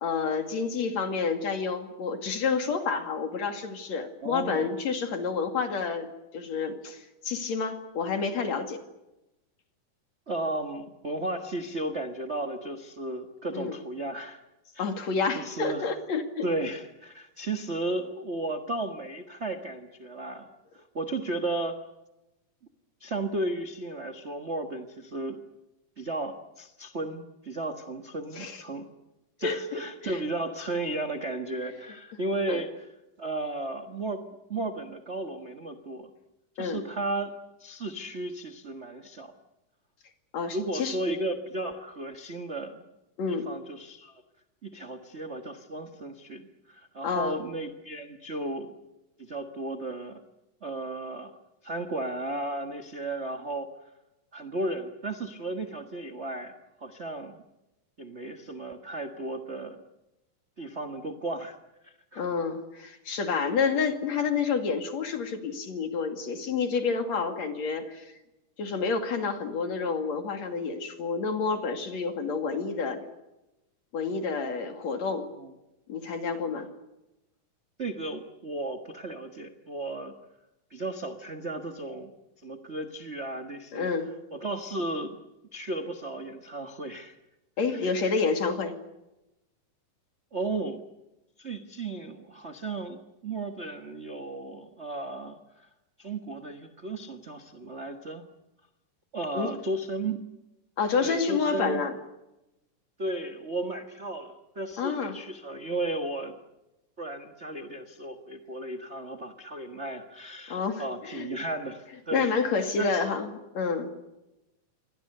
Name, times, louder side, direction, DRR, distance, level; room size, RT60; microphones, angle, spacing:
voice 1, 0.0-8.8 13.5-13.8 14.8-16.5 28.4-28.6 29.4-30.2 32.5-32.6 36.6-36.9 40.3-41.0 43.2-43.5 47.0-47.4 62.2-68.1 68.6-73.0 73.9-75.3 75.9-76.7 83.7-84.1 87.6-88.8 99.4-99.5 100.8-101.9 104.8-105.2 110.5-111.3 112.1-113.9, left 5 dB, 55° left, 6 dB, 3.4 m, -29 dB
voice 2, 4.2-4.7 10.3-14.4 14.7-14.9 15.3-15.9 16.4-20.5 20.7-21.8 23.0-25.4 26.0-28.8 29.4-32.7 33.2-34.2 34.5-36.1 36.5-37.3 37.6-39.3 40.5-42.8 43.3-44.2 44.6-48.8 49.2-50.2 50.6-51.3 51.6-53.7 54.3-57.4 58.0-59.8 60.6-61.6 61.8-62.3 75.4-75.5 77.8-80.1 80.7-82.1 82.4-83.9 84.3-85.2 85.5-87.2 87.7-88.0 90.3-90.8 91.4-95.7 96.0-98.2 99.1-100.3 101.0-101.8 103.0-106.3 107.0-113.1, right 2 dB, 65° right, 6 dB, 0.6 m, -34 dB
28.5 x 24.0 x 6.7 m, 0.96 s
omnidirectional pair, 4.0 m